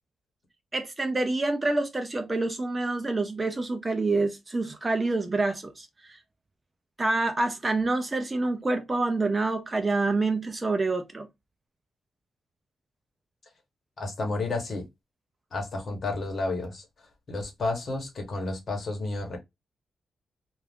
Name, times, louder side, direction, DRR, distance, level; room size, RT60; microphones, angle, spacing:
voice 1, 0.7-6.2 7.0-11.3, right 2 dB, 20° right, 0.4 m, -27 dB
voice 2, 14.0-14.9 15.5-16.8 17.3-19.4, left 2 dB, 40° left, 1.0 m, -31 dB
2.5 x 2.3 x 3.3 m
wide cardioid pair, 140°, 0 cm